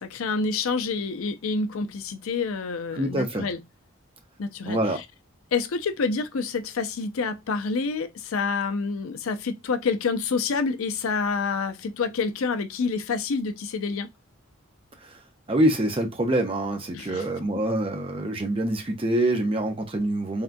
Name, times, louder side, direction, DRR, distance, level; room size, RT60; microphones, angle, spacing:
voice 1, 0.0-3.6 4.4-5.0 5.5-14.1 16.9-17.3, left 4 dB, 80° left, 0.5 m, -28 dB
voice 2, 2.9-3.5 4.7-5.0 15.0-15.2 15.5-20.4, right 1 dB, 25° right, 0.6 m, -25 dB
3.5 x 2.3 x 2.5 m
head